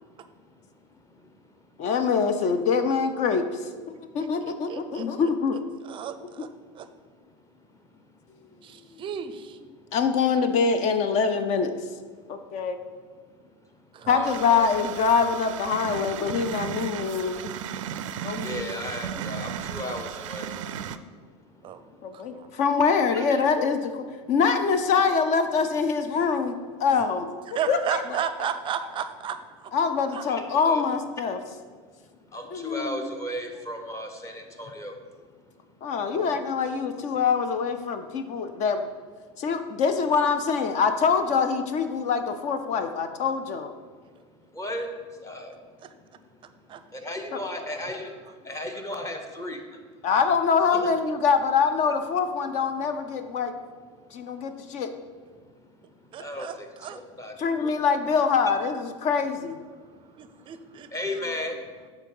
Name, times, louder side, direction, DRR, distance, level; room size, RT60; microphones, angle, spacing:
voice 1, 0.0-1.7 4.0-4.2 4.9-5.0 6.6-6.7 7.0-7.3 8.0-8.2 8.5-9.0 12.1-12.6 13.4-13.5 13.9-14.7 17.7-17.9 18.3-22.6 23.1-23.2 30.3-30.9 32.0-35.0 35.3-35.6 38.2-38.3 44.0-49.9 50.7-50.9 54.1-54.3 54.6-54.8 55.3-57.7 59.7-60.6 60.8-61.9, left 1 dB, 20° left, 5 dB, 0.9 m, -38 dB
voice 2, 1.8-3.8 4.1-5.6 9.9-11.7 12.3-12.8 14.1-17.5 18.2-18.7 22.0-26.5 26.8-27.3 27.7-28.0 29.7-31.4 32.5-33.0 35.8-38.9 39.4-43.7 47.3-47.4 50.0-53.5 54.1-54.9 57.4-59.6, left 5 dB, 45° left, 9 dB, 0.6 m, -24 dB
voice 3, 4.2-5.1 5.9-6.5 6.7-6.9 8.6-9.6 13.9-14.3 21.6-21.8 22.1-22.5 27.5-29.7 30.1-30.2 36.1-36.4 46.7-46.8 56.1-57.0 60.2-60.9, right 8 dB, 30° right, 11 dB, 0.5 m, -34 dB
sound 1, 14.2-21.0, right 8 dB, 85° right, 0.4 m, -35 dB
7.2 x 3.9 x 5.4 m, 1.5 s
supercardioid pair, 110°, 16 cm